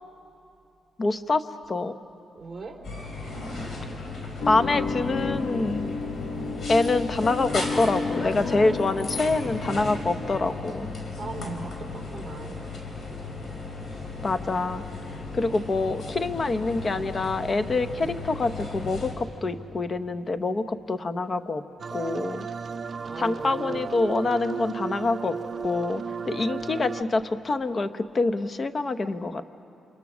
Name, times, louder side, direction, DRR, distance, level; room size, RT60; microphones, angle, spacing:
voice 1, 1.0-2.0 4.5-5.9 6.7-10.9 14.2-14.8 15.3-21.6 21.9-22.5 23.2-25.3 25.6-29.4, left 3 dB, 35° left, 11 dB, 0.9 m, -26 dB
voice 2, 2.3-2.8 8.9-10.4 11.2-12.7 13.9-14.0 23.0-24.1, right 3 dB, 20° right, -1 dB, 3.7 m, -41 dB
sound 1, 2.8-19.1, left 3 dB, 60° left, 4.1 m, -35 dB
sound 2, 4.4-9.6, left 4 dB, 75° left, 1.1 m, -32 dB
sound 3, 21.8-27.0, right 6 dB, 50° right, 0.5 m, -34 dB
29.0 x 27.0 x 6.2 m, 2.8 s
cardioid pair, 100°, 0 cm